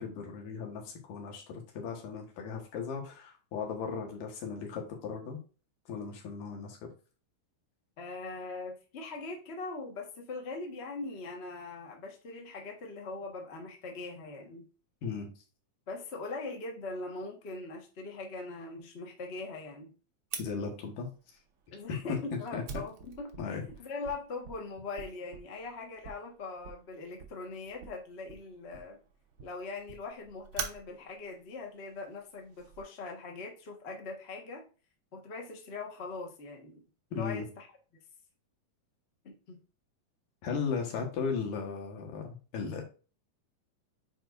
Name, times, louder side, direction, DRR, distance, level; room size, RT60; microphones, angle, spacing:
voice 1, 0.0-5.4 5.9-6.9 15.0-15.3 20.4-21.1 21.9-22.0 22.5-22.6 23.4-23.6 37.1-37.5 40.4-42.8, left 5 dB, 85° left, 2 dB, 3.1 m, -36 dB
voice 2, 8.0-14.7 15.9-19.9 21.7-29.0 29.4-34.6 35.1-36.8 37.1-37.7 39.2-39.6 40.8-40.9, left 3 dB, 60° left, 1 dB, 0.6 m, -41 dB
Fire, 20.3-32.8, right 6 dB, 75° right, 1.1 m, -46 dB
8.6 x 4.6 x 2.6 m, 0.35 s
omnidirectional pair, 3.7 m